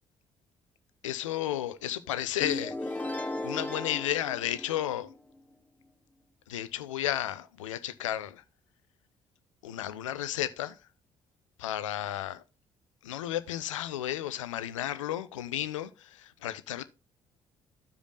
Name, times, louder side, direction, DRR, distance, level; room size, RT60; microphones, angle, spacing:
voice 1, 1.0-3.1 3.4-5.1 6.5-8.4 9.6-10.8 11.6-12.4 13.0-16.8, left 12 dB, 75° left, 0.5 m, -33 dB
sound 1, 2.4-5.2, left 2 dB, 10° left, 1.1 m, -36 dB
14.5 x 5.0 x 2.4 m
figure-of-eight pair, 45°, 16 cm